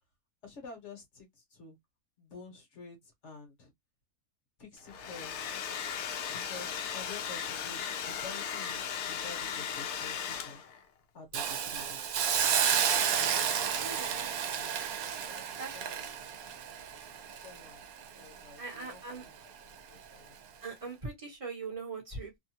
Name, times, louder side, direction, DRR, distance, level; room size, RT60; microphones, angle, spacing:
voice 1, 0.4-1.8 2.2-3.0 3.2-3.7 4.6-5.6 6.3-10.6 11.1-12.6 13.8-14.2 15.3-16.1 17.3-17.8 18.1-19.5 19.9-20.3, left 4 dB, 55° left, 1.1 m, -50 dB
Domestic sounds home sounds, 4.8-10.8, left 7 dB, 70° left, 0.7 m, -37 dB
Hiss, 11.3-18.4 18.8-18.9, right 8 dB, 75° right, 1.1 m, -31 dB
voice 2, 13.8-14.4 15.6-15.7 18.6-19.2 20.6-22.4, right 4 dB, 25° right, 0.9 m, -41 dB
2.8 x 2.2 x 2.8 m
omnidirectional pair, 1.7 m